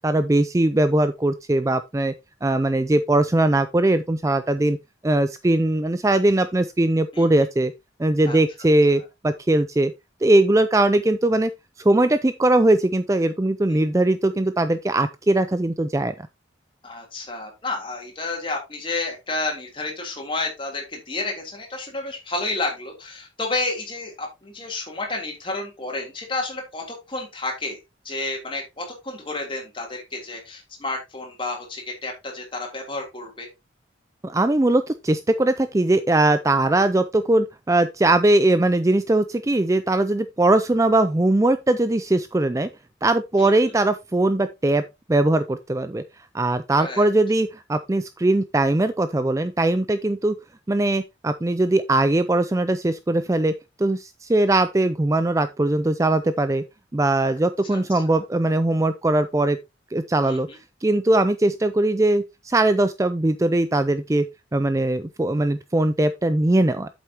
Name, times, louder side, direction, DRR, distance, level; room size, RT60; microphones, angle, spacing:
voice 1, 0.0-2.1 2.4-4.8 5.0-7.7 8.0-9.9 10.2-11.5 11.8-16.1 34.2-42.7 43.0-44.8 45.1-46.0 46.3-50.4 50.7-53.5 53.8-56.6 56.9-59.6 59.9-60.5 60.8-64.3 64.5-66.9, right 2 dB, 15° right, 0.4 m, -20 dB
voice 2, 16.8-27.8 28.0-33.5 43.4-43.7 46.7-47.1 57.7-57.8 58.1-58.2 60.2-60.6, left 2 dB, 25° left, 3.3 m, -31 dB
8.4 x 7.7 x 2.9 m
head